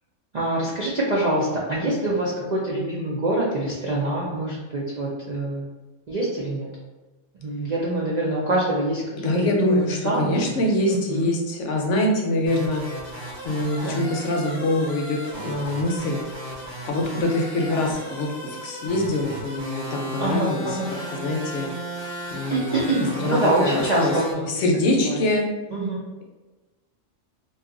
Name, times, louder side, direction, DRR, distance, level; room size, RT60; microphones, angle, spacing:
voice 1, 0.3-5.7 6.1-6.7 7.4-10.5 10.9-11.3 13.8-14.1 20.2-20.9 22.5-24.6 24.9-25.2 25.7-26.0, right 1 dB, 60° right, -5 dB, 0.4 m, -25 dB
voice 2, 9.2-12.8 13.4-16.2 16.9-20.7 21.1-21.7 22.3-22.8 23.2-24.1 24.5-25.4, left 1 dB, 70° left, 1 dB, 0.9 m, -24 dB
sound 1, 12.5-24.3, equal, 25° right, 0.7 m, -36 dB
2.7 x 2.3 x 3.7 m, 1.2 s
omnidirectional pair, 1.4 m